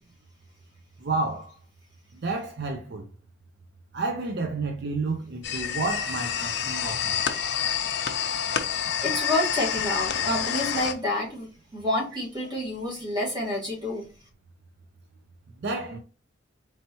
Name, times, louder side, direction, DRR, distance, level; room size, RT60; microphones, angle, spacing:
voice 1, 1.0-1.6 2.1-3.1 3.9-7.2 15.6-16.0, right 3 dB, 60° right, 0.5 m, -30 dB
sound 1, 5.4-10.9, left 8 dB, 65° left, 0.5 m, -28 dB
voice 2, 9.0-14.1, left 1 dB, 25° right, 1.7 m, -28 dB
4.3 x 3.1 x 2.9 m
head